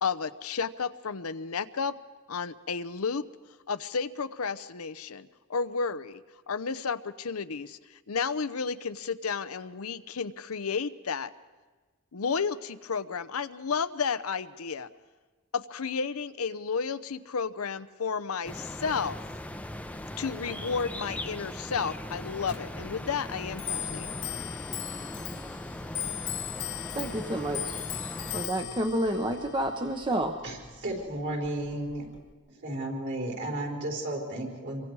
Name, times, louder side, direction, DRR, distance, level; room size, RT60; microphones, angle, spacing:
voice 1, 0.0-1.9 2.3-3.2 3.7-6.2 6.5-7.8 8.1-11.3 12.1-14.9 15.5-19.2 20.2-24.1, left 5 dB, 90° left, 13 dB, 0.8 m, -32 dB
sound 1, 18.4-28.5, left 1 dB, 5° left, 0.7 m, -39 dB
Clock, 22.4-32.3, left 11 dB, 60° left, 1.6 m, -39 dB
voice 2, 26.9-27.7 28.3-30.3, right 1 dB, 25° right, 5 dB, 1.0 m, -29 dB
voice 3, 30.4-32.1 32.6-34.9, right 1 dB, 55° right, 0 dB, 4.4 m, -33 dB
27.5 x 23.5 x 4.8 m, 1.3 s
head